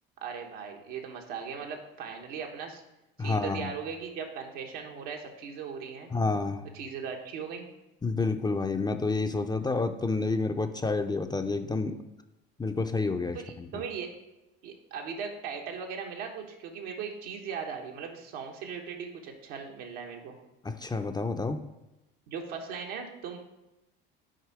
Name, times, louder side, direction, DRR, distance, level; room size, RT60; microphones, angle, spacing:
voice 1, 0.2-2.8 3.2-6.1 6.7-7.7 13.3-14.1 14.6-20.3 22.3-23.4, right 6 dB, 75° right, 2 dB, 1.3 m, -38 dB
voice 2, 3.2-3.7 6.1-6.6 8.0-12.0 12.6-13.8 20.6-21.6, left 3 dB, 15° left, 7 dB, 0.5 m, -29 dB
6.4 x 4.4 x 4.8 m, 0.96 s
supercardioid pair, 80°, 29 cm